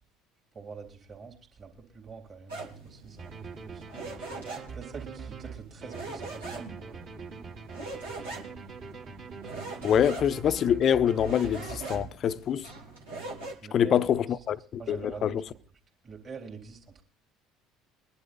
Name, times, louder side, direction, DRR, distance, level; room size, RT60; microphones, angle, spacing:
voice 1, 0.5-3.8 4.7-7.1 13.6-14.0 14.8-15.6 16.0-17.0, right 5 dB, 40° right, 3.3 m, -45 dB
sound 1, 2.5-13.5, right 3 dB, 85° right, 2.5 m, -42 dB
sound 2, 3.2-12.5, right 5 dB, 60° right, 3.3 m, -43 dB
voice 2, 9.8-12.7 13.7-15.4, left 9 dB, 45° left, 0.6 m, -25 dB
22.5 x 11.5 x 2.6 m
figure-of-eight pair, 60°, 0 cm